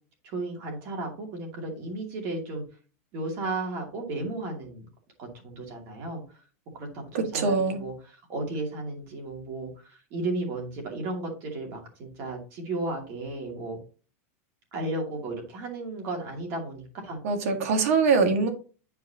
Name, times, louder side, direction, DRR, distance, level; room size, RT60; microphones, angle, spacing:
voice 1, 0.2-2.6 3.1-4.9 5.2-6.4 6.7-7.0 7.3-13.8 14.7-17.2, right 2 dB, 35° right, 2.5 m, -34 dB
voice 2, 7.1-7.8 17.2-18.5, right 4 dB, 65° right, 1.8 m, -23 dB
10.5 x 4.7 x 2.9 m
supercardioid pair, 180°, 8 cm